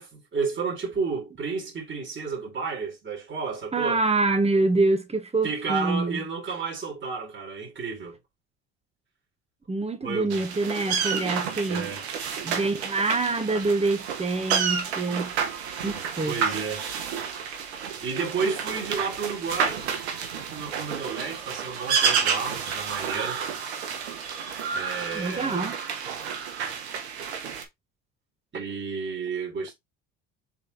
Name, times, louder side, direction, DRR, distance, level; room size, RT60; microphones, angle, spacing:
voice 1, 0.0-4.0 5.4-8.2 10.0-10.4 11.7-12.0 16.3-16.8 18.0-19.9 20.2-23.5 24.7-25.7 28.5-29.7, right 5 dB, 35° right, 4.2 m, -32 dB
voice 2, 3.7-6.2 9.7-11.9 12.4-15.3 15.8-16.4 25.1-25.8, right 3 dB, 20° right, 1.7 m, -26 dB
sound 1, 10.3-27.6, right 6 dB, 90° right, 1.4 m, -30 dB
6.8 x 4.1 x 3.4 m
hypercardioid pair, 70°, 32 cm